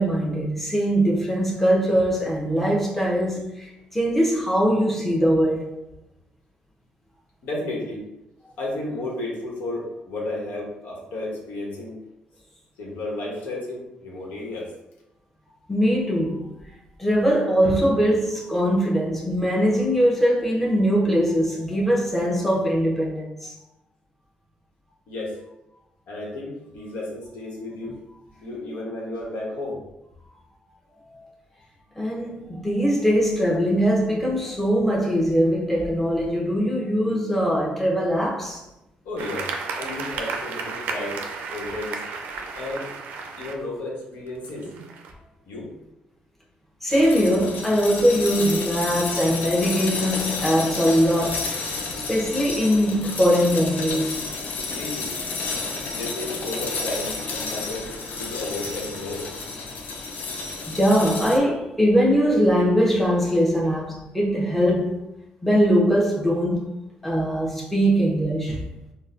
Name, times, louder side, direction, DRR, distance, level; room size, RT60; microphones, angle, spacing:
voice 1, 0.0-5.8 15.7-16.5 17.0-23.5 32.0-38.6 46.8-51.5 52.1-54.1 60.7-65.0 65.4-66.7 67.0-68.7, equal, 5° left, 0.8 m, -21 dB
voice 2, 7.4-8.0 8.6-11.9 12.8-14.7 25.1-25.4 26.1-28.0 28.4-29.8 39.0-39.5 39.8-42.0 42.6-42.9 43.4-44.7 45.4-45.7 54.7-55.1 55.9-57.9 58.1-59.3 59.7-60.4, left 2 dB, 85° left, 1.0 m, -33 dB
sound 1, 39.2-43.5 44.3-45.1, right 4 dB, 85° right, 0.4 m, -33 dB
sound 2, 46.9-61.4, left 4 dB, 70° left, 0.5 m, -31 dB
4.0 x 2.2 x 2.5 m
cardioid pair, 85°, 3 cm